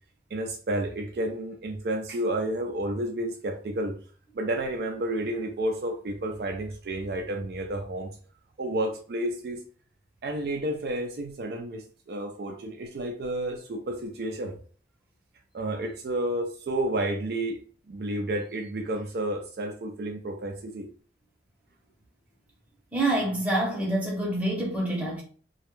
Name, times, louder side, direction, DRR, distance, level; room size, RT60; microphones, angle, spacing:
voice 1, 0.3-4.0 4.3-8.1 8.6-9.6 10.2-14.6 15.5-17.6 17.9-20.9, right 1 dB, 60° right, 0.4 m, -31 dB
voice 2, 22.9-25.2, right 1 dB, 10° right, 0.7 m, -26 dB
2.2 x 2.0 x 3.0 m
head